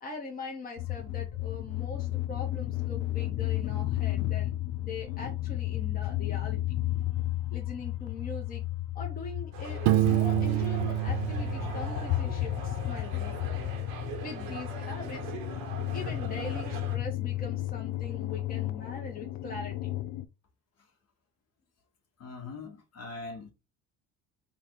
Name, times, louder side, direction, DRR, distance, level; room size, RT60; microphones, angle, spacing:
voice 1, 0.0-4.5 4.8-6.6 7.5-8.6 8.9-13.4 14.2-15.3 15.9-19.8, left 3 dB, 25° left, 1.2 m, -41 dB
sound 1, 0.8-20.3, left 15 dB, 80° left, 0.6 m, -33 dB
sound 2, 9.5-17.0, right 7 dB, 80° right, 1.4 m, -42 dB
Piano, 9.9-12.6, right 15 dB, 55° right, 0.5 m, -27 dB
voice 2, 22.2-23.5, left 3 dB, 45° left, 1.5 m, -41 dB
3.8 x 2.5 x 4.5 m
supercardioid pair, 90°, 35 cm